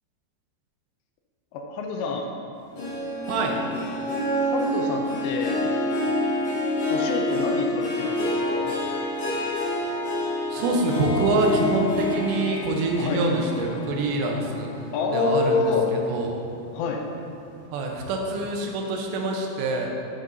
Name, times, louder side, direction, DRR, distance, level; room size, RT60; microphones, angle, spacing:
voice 1, 1.5-2.3 4.4-5.6 6.9-8.7 13.0-13.2 14.9-15.9 16.7-17.1, left 4 dB, 80° left, 2 dB, 2.7 m, -27 dB
Harp, 2.8-15.5 15.9-16.3 16.8-16.9, left 1 dB, 55° left, 2.2 m, -28 dB
voice 2, 10.5-15.6 15.9-16.5 17.7-19.9, right 2 dB, 75° right, 1 dB, 2.8 m, -26 dB
12.0 x 4.0 x 3.9 m, 2.7 s
omnidirectional pair, 5.3 m